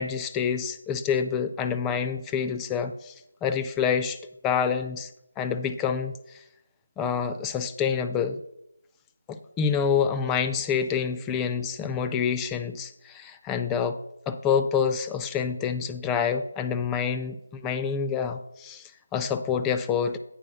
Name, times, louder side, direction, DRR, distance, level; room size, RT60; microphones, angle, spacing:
voice 1, 0.0-3.1 3.4-4.2 4.4-5.1 5.4-6.4 7.0-8.4 9.3-14.0 14.3-20.2, left 7 dB, 10° left, 9 dB, 0.4 m, -27 dB
8.6 x 5.1 x 6.2 m, 0.82 s
figure-of-eight pair, 160°, 0 cm